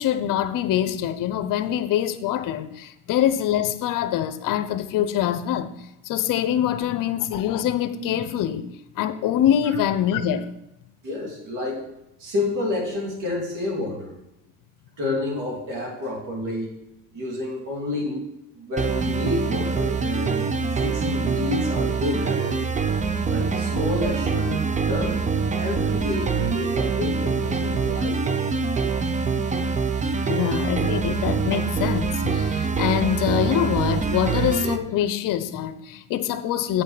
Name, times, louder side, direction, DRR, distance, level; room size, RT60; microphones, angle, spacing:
voice 1, 0.0-5.7 6.0-8.7 8.9-10.5 30.3-36.8, left 10 dB, 70° left, 0.8 m, -24 dB
voice 2, 11.0-11.8 12.2-14.1 15.0-16.7 17.1-18.2 18.5-20.4 20.8-22.6 23.3-25.3 25.6-28.2, left 2 dB, 60° right, 3.1 m, -29 dB
sound 1, 18.8-34.8, right 5 dB, 20° right, 0.6 m, -24 dB
8.4 x 5.5 x 4.9 m
cardioid pair, 100°, 34 cm